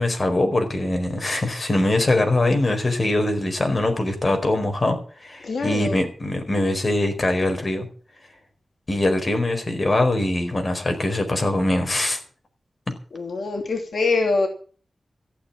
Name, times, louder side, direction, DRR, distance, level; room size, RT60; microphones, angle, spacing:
voice 1, 0.0-7.9 8.9-12.2, left 1 dB, 40° left, 4.7 m, -22 dB
voice 2, 5.4-6.0 13.1-14.5, left 3 dB, 75° left, 2.7 m, -24 dB
15.0 x 7.3 x 10.0 m
wide cardioid pair, 70°, 0 cm